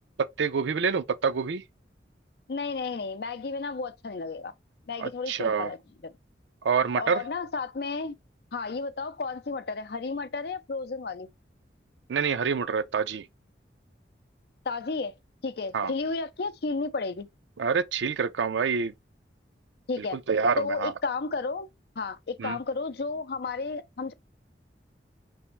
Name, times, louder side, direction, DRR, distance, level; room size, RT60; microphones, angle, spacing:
voice 1, 0.2-1.6 5.0-5.7 6.6-7.2 12.1-13.3 15.7-15.9 17.6-18.9 20.0-20.9 22.4-22.6, right 6 dB, 85° right, 0.5 m, -27 dB
voice 2, 2.5-4.5 4.9-5.8 6.0-6.1 7.0-8.1 8.5-11.3 14.7-15.1 15.4-17.3 19.9-20.2 20.6-21.7 22.0-24.1, left 4 dB, 60° left, 0.5 m, -32 dB
5.2 x 3.4 x 2.9 m
head